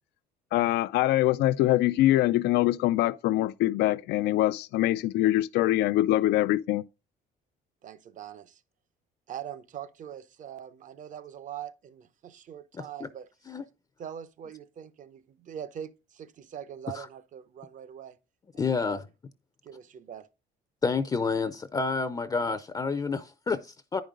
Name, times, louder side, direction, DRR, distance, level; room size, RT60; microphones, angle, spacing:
voice 1, 0.5-6.8, left 15 dB, 80° left, 0.4 m, -24 dB
voice 2, 7.8-8.6 9.3-13.3 14.0-18.2 18.5-19.0 19.6-20.3, right 9 dB, 50° right, 0.7 m, -42 dB
voice 3, 12.7-13.1 13.5-13.6 16.9-17.1 18.6-19.0 20.8-24.0, left 4 dB, 25° left, 0.5 m, -29 dB
9.9 x 5.2 x 3.7 m
cardioid pair, 110°, 17 cm